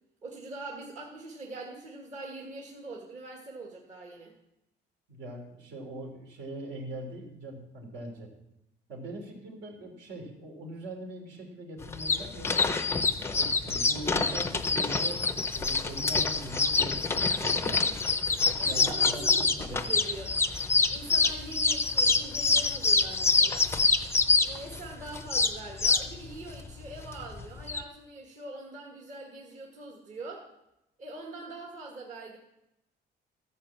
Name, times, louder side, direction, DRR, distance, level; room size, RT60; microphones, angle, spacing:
voice 1, 0.2-4.3 18.6-20.3 20.9-23.7 24.4-30.5 31.0-32.4, right 2 dB, 40° right, -1 dB, 1.8 m, -43 dB
voice 2, 5.1-8.3 8.9-12.8 13.2-17.9 18.6-19.9, right 1 dB, 70° right, 1 dB, 3.4 m, -42 dB
sound 1, 11.8-27.8, left 4 dB, 15° left, 0.5 m, -26 dB
13.5 x 5.6 x 7.4 m, 0.86 s
cardioid pair, 160°, 18 cm